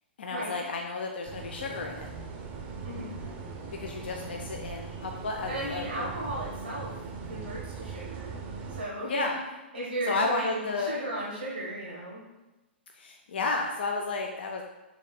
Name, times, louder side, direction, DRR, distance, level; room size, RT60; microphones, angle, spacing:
voice 1, 0.2-2.1 3.8-6.1 9.1-9.4 10.1-10.9 12.9-14.6, left 3 dB, 65° left, 2 dB, 0.4 m, -32 dB
sound 1, 1.2-8.8, right 5 dB, 30° right, 0.5 m, -40 dB
voice 2, 5.5-6.9 7.2-8.4 8.7-9.3 9.7-12.2, right 1 dB, 85° right, -5 dB, 1.1 m, -35 dB
6.2 x 3.2 x 2.2 m, 1.1 s
figure-of-eight pair, 110°, 6 cm